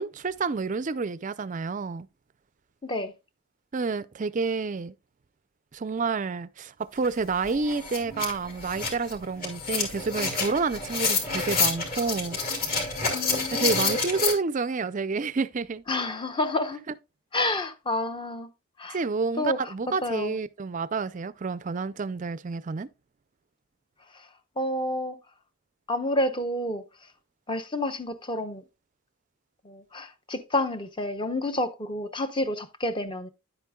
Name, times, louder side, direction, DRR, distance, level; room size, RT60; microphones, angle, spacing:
voice 1, 0.0-2.1 3.7-4.9 5.7-12.4 13.5-15.8 18.9-22.9, right 4 dB, 35° right, 0.4 m, -29 dB
voice 2, 2.8-3.1 13.1-13.9 15.9-16.8 17.3-18.5 18.8-19.0 19.4-19.7 20.0-20.4 24.6-25.2 25.9-26.8 27.5-28.6 29.6-33.3, left 1 dB, 20° left, 0.7 m, -29 dB
sound 1, 7.0-7.1 7.4-14.3, left 4 dB, 40° left, 2.6 m, -28 dB
10.0 x 8.3 x 2.3 m
head